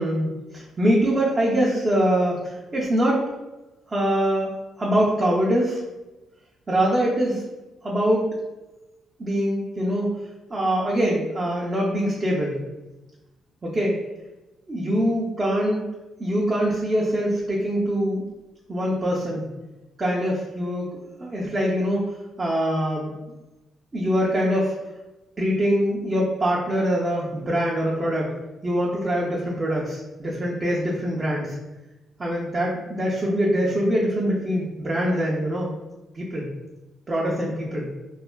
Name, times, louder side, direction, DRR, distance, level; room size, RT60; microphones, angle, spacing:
voice 1, 0.0-3.3 3.9-5.8 6.7-7.4 7.8-8.3 9.2-10.1 10.5-12.6 13.6-13.9 14.7-15.8 16.2-18.2 18.7-19.4 20.0-20.9 21.2-22.0 22.4-23.1 23.9-24.7 25.4-28.3 28.6-31.6 32.2-35.7 36.1-36.5 37.1-37.9, equal, 30° right, -5 dB, 0.5 m, -23 dB
3.2 x 2.3 x 2.2 m, 1.1 s
cardioid pair, 90°, 0 cm